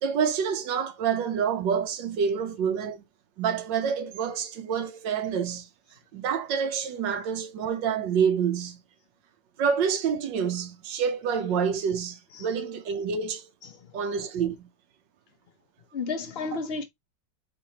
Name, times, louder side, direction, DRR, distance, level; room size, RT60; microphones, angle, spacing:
voice 1, 0.0-3.0 3.4-5.7 6.1-8.8 9.6-13.5 13.9-14.7, right 7 dB, 75° right, 1.4 m, -27 dB
voice 2, 13.6-14.0 15.9-16.8, left 4 dB, 55° left, 0.6 m, -33 dB
4.4 x 3.7 x 2.8 m
omnidirectional pair, 2.0 m